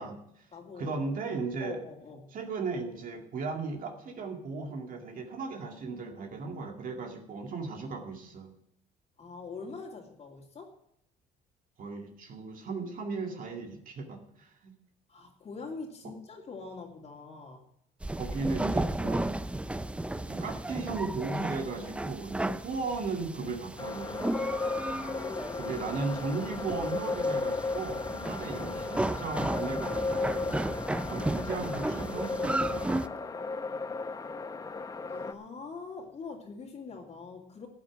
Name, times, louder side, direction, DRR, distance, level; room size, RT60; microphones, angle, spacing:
voice 1, 0.0-0.5 0.8-1.8 2.3-8.5 11.8-14.7 16.0-16.1 18.2-19.3 20.2-24.4 25.6-30.8 31.0-32.9, right 4 dB, 55° right, 3 dB, 2.2 m, -36 dB
voice 2, 0.5-1.0 1.4-2.3 9.2-10.7 15.1-17.6 24.8-25.7 35.1-37.7, left 4 dB, 40° left, -4 dB, 2.7 m, -44 dB
sound 1, 18.0-33.1, right 1 dB, 5° right, 0.5 m, -34 dB
sound 2, 23.8-35.3, left 3 dB, 20° left, 0.9 m, -35 dB
13.5 x 8.6 x 6.3 m, 0.75 s
cardioid pair, 110°, 17 cm